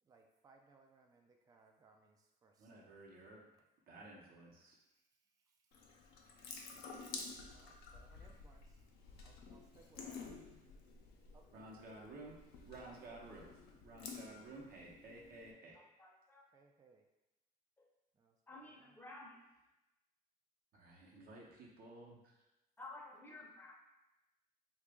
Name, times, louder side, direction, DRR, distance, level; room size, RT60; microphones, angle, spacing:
voice 1, 0.0-2.8 5.7-5.8 7.5-8.8 9.2-10.3 11.3-11.9 16.5-17.1 18.1-19.0 22.0-22.1, right 4 dB, 20° right, 3 dB, 0.3 m, -67 dB
voice 2, 2.6-3.5 3.9-4.8 11.5-15.8 20.7-22.3, right 2 dB, 60° right, -2 dB, 0.8 m, -54 dB
Water tap faucet / Sink (filling or washing) / Drip, 5.7-15.5, left 4 dB, 75° left, 0.5 m, -52 dB
voice 3, 15.7-16.4 18.5-19.4 22.8-23.7, left 2 dB, 10° left, -2 dB, 0.6 m, -53 dB
2.9 x 2.3 x 3.5 m, 0.98 s
cardioid pair, 110°, 17 cm